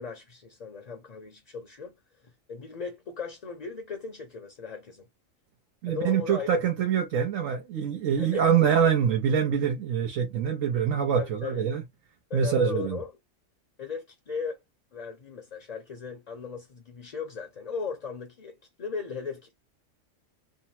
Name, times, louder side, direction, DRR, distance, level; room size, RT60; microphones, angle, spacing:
voice 1, 0.0-5.1 5.9-6.5 8.2-8.5 8.8-8.9 11.2-11.6 12.3-13.1 13.8-14.6 14.9-19.6, left 5 dB, 40° left, 0.6 m, -37 dB
voice 2, 5.8-11.8 12.3-13.0, right 7 dB, 80° right, 1.2 m, -25 dB
3.3 x 2.1 x 2.6 m
omnidirectional pair, 1.4 m